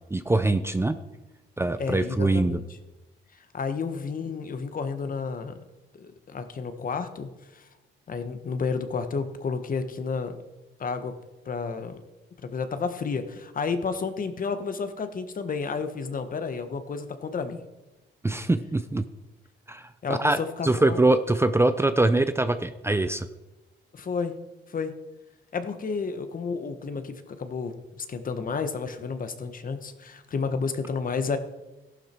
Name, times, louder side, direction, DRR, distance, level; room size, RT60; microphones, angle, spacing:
voice 1, 0.1-1.0 1.6-2.6 18.2-19.0 19.7-23.3, right 2 dB, 15° right, 10 dB, 0.6 m, -23 dB
voice 2, 1.8-2.7 3.3-5.6 5.9-7.7 8.1-10.4 10.8-11.1 11.4-12.0 12.4-17.6 20.0-21.1 23.9-24.3 24.7-24.9 25.5-31.4, left 5 dB, 45° left, 9 dB, 1.4 m, -31 dB
14.5 x 11.5 x 4.5 m, 1.1 s
cardioid pair, 90°, 20 cm